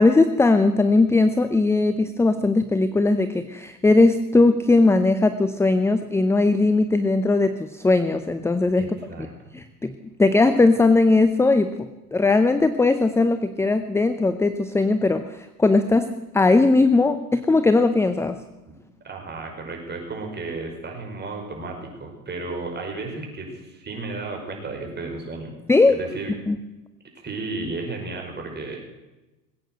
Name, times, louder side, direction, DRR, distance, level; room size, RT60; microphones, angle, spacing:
voice 1, 0.0-8.9 9.5-9.9 10.2-11.7 12.1-18.4 25.7-26.0 26.5-26.6, left 3 dB, 5° left, 11 dB, 0.6 m, -19 dB
voice 2, 8.8-9.3 19.0-25.5 25.9-26.3 27.2-28.8, right 3 dB, 20° right, 2 dB, 5.2 m, -33 dB
20.5 x 8.9 x 7.8 m, 1.1 s
hypercardioid pair, 95°, 45 cm